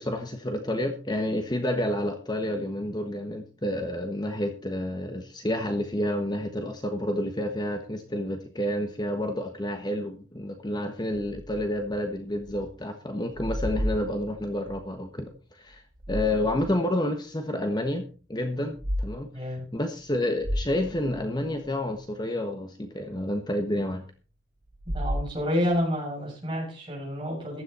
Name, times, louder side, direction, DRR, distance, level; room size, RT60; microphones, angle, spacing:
voice 1, 0.0-24.0, left 1 dB, 20° left, 5 dB, 1.2 m, -29 dB
sound 1, 11.1-12.8 13.1-14.8 15.7-16.8 17.3-17.4 18.6-19.1 19.5-19.6 20.0-20.1 20.4-21.7 24.7-25.8, equal, 75° right, 2.7 m, -33 dB
voice 2, 19.3-19.6 24.9-27.6, equal, 25° right, -2 dB, 7.4 m, -29 dB
15.0 x 11.0 x 4.3 m, 0.37 s
head